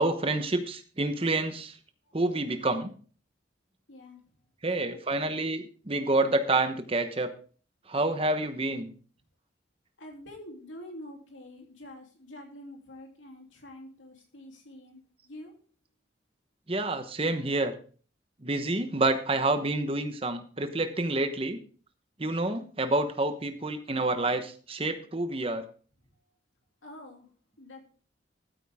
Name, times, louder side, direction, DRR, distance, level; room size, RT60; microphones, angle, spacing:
voice 1, 0.0-1.8 2.1-2.9 4.6-7.3 7.9-8.9 16.7-17.7 18.4-21.6 22.2-25.7, right 2 dB, 30° right, 8 dB, 1.0 m, -28 dB
voice 2, 3.9-4.2 4.8-5.0 10.0-15.5 26.8-27.3 27.6-27.8, left 1 dB, 90° left, 2 dB, 3.0 m, -46 dB
13.0 x 9.1 x 3.6 m, 0.41 s
head